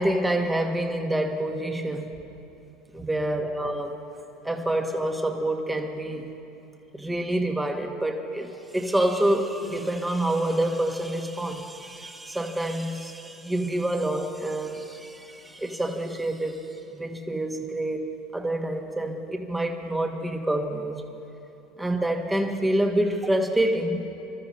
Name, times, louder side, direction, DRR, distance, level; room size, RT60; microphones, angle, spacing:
voice 1, 0.0-2.1 2.9-3.9 4.4-6.3 6.9-21.0 21.8-24.0, right 1 dB, 10° right, 3 dB, 1.4 m, -27 dB
26.5 x 13.5 x 3.2 m, 2.9 s
supercardioid pair, 115°, 0 cm